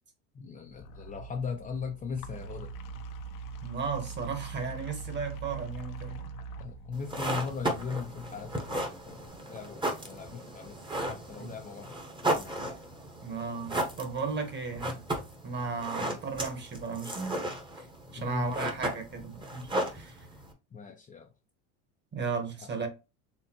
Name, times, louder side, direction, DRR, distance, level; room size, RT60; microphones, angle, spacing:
voice 1, 0.3-2.7 6.6-12.8 16.0-16.2 18.2-18.7 20.7-21.3 22.8-22.9, left 5 dB, 20° left, 0.5 m, -39 dB
sound 1, 0.7-9.3, right 4 dB, 55° left, 0.7 m, -43 dB
voice 2, 3.6-6.3 11.4-11.5 13.2-15.0 15.4-17.4 17.8-17.9 18.1-20.3 22.1-22.9, right 5 dB, 25° right, 1.2 m, -35 dB
sound 2, 6.9-20.5, right 1 dB, 10° right, 1.0 m, -35 dB
4.3 x 3.2 x 2.9 m
supercardioid pair, 105°, 39 cm